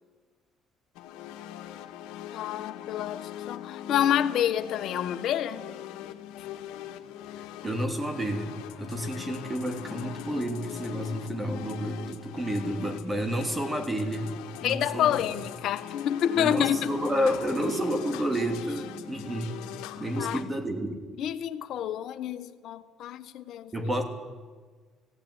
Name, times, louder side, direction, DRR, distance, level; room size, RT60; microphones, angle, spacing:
sound 1, 0.9-20.4, left 11 dB, 85° left, 1.6 m, -41 dB
voice 1, 2.3-5.7 9.2-9.3 14.6-17.0 20.2-20.4 21.2-23.7, left 10 dB, 65° left, 9 dB, 1.2 m, -28 dB
voice 2, 7.6-15.4 16.3-19.5 20.0-21.0 23.7-24.0, equal, 15° right, 5 dB, 3.0 m, -30 dB
17.5 x 16.5 x 9.8 m, 1.5 s
cardioid pair, 105°, 0 cm